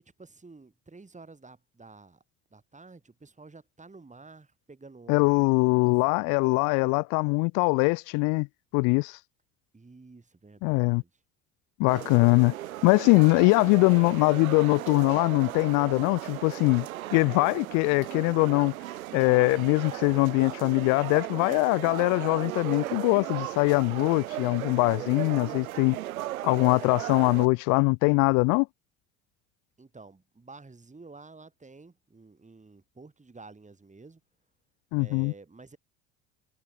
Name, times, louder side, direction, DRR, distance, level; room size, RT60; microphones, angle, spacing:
voice 1, 0.0-2.2 2.5-6.3 9.7-11.1 29.8-34.2 35.0-35.8, right 3 dB, 15° right, 6.9 m, -51 dB
voice 2, 5.1-8.5 8.7-9.2 10.6-11.0 11.8-12.5 12.8-18.7 19.1-26.0 26.4-28.7 34.9-35.3, left 33 dB, 50° left, 0.4 m, -22 dB
sound 1, 11.9-27.5, right 15 dB, 75° right, 1.0 m, -36 dB
figure-of-eight pair, 60°, 42 cm